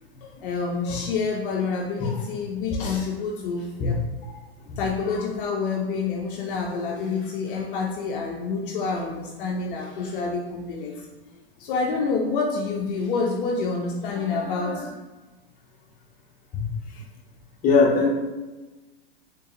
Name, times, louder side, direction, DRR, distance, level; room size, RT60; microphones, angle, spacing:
voice 1, 0.2-3.9 4.8-11.1 11.6-14.9, left 4 dB, 55° left, 0 dB, 0.7 m, -28 dB
voice 2, 17.6-18.1, left 4 dB, 25° left, -2 dB, 1.0 m, -19 dB
3.8 x 3.7 x 2.8 m, 1.2 s
hypercardioid pair, 130°, 31 cm